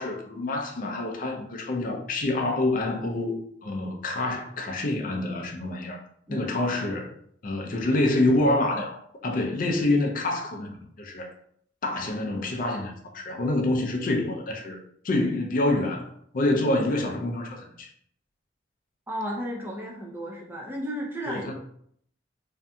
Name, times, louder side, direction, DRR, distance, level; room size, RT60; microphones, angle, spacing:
voice 1, 0.0-6.0 6.3-7.1 7.4-11.3 11.8-14.8 15.0-16.1 16.3-17.9 21.3-21.5, left 2 dB, 50° left, 0.5 m, -27 dB
voice 2, 19.1-21.5, equal, 10° right, 0.5 m, -33 dB
2.6 x 2.6 x 2.2 m
head